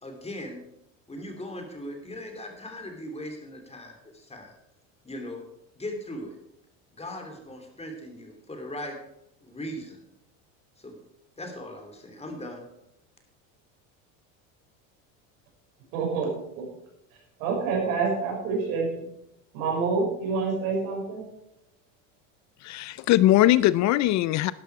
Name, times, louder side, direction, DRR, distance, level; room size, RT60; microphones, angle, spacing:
voice 1, 0.0-0.6 1.1-4.6 5.0-5.4 5.7-6.4 7.0-9.0 9.4-10.0 10.8-11.0 11.4-12.7, left 1 dB, 15° left, 3 dB, 3.0 m, -39 dB
voice 2, 15.9-16.7 17.4-19.1 19.5-21.3, right 4 dB, 75° right, 0 dB, 5.9 m, -27 dB
voice 3, 22.6-24.5, left 14 dB, 45° left, 18 dB, 0.4 m, -21 dB
12.0 x 12.0 x 4.7 m, 0.80 s
supercardioid pair, 105°, 40 cm